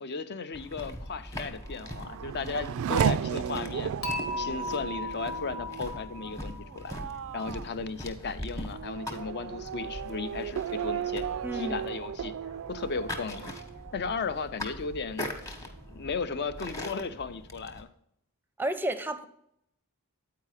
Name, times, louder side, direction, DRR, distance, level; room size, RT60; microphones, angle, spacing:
voice 1, 0.0-3.9 4.4-7.0 7.3-11.2 11.5-12.3 12.7-13.5 13.9-15.3 15.9-17.9, left 4 dB, 50° left, 0.5 m, -35 dB
sound 1, 0.5-17.8, left 1 dB, 15° left, 1.0 m, -42 dB
Race car auto racing / Accelerating revving vroom, 1.5-14.7 15.1-15.8, right 8 dB, 65° right, 0.3 m, -35 dB
Dishes pots and pans / Chink clink, 4.0-7.2, left 1 dB, 75° left, 1.2 m, -36 dB
voice 2, 11.4-11.8 18.6-19.2, right 1 dB, 10° right, 0.5 m, -31 dB
8.5 x 4.7 x 4.8 m
head